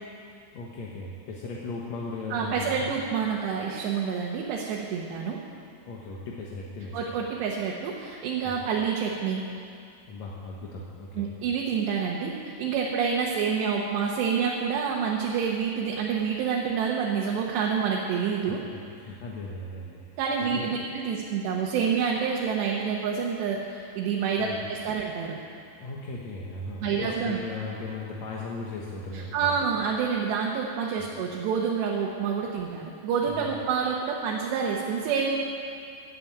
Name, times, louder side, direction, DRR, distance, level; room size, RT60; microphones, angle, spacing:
voice 1, 0.5-2.9 5.9-7.0 8.4-8.5 10.1-11.3 18.5-18.6 19.0-20.0 20.4-20.8 24.4-24.6 25.8-29.6 31.0-31.1 33.3-33.5, left 3 dB, 65° left, -3 dB, 1.8 m, -37 dB
voice 2, 2.3-5.4 6.9-9.4 11.2-18.6 20.2-25.4 26.8-27.4 29.1-35.4, right 6 dB, 80° right, -3 dB, 3.3 m, -28 dB
15.0 x 8.7 x 8.7 m, 2.4 s
omnidirectional pair, 5.0 m